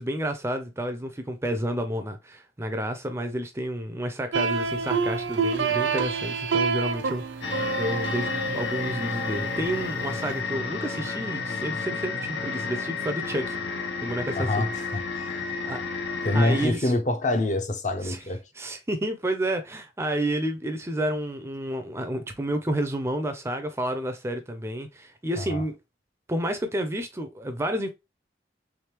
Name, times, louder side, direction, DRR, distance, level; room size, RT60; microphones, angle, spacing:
voice 1, 0.0-14.7 15.6-15.8 16.3-16.9 18.0-18.2 18.5-25.8 26.3-27.9, right 1 dB, 15° right, 0.4 m, -30 dB
sound 1, 4.3-10.4, right 5 dB, 90° right, 0.6 m, -28 dB
sound 2, 7.4-16.7, left 4 dB, 85° left, 0.9 m, -31 dB
voice 2, 14.4-15.5 16.2-18.4 25.4-25.6, left 1 dB, 40° left, 0.6 m, -26 dB
3.5 x 3.3 x 2.9 m
head